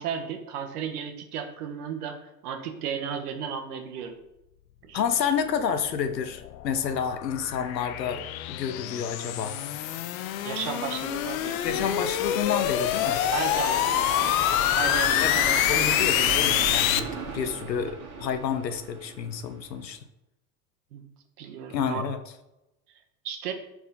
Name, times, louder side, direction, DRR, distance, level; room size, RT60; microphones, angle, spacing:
voice 1, 0.0-4.2 4.9-5.0 10.4-11.9 13.3-14.4 14.7-16.3 20.9-21.0 21.4-22.0 23.2-23.5, right 7 dB, 65° right, 5 dB, 1.2 m, -34 dB
voice 2, 4.9-9.6 11.6-13.2 15.2-15.3 15.7-20.0 21.7-22.2, left 7 dB, 85° left, 9 dB, 0.8 m, -29 dB
sound 1, 5.7-17.0, left 12 dB, 60° left, 0.6 m, -26 dB
sound 2, 11.0-19.9, right 5 dB, 45° right, 1.8 m, -37 dB
4.4 x 4.2 x 5.4 m, 0.91 s
hypercardioid pair, 85°, 49 cm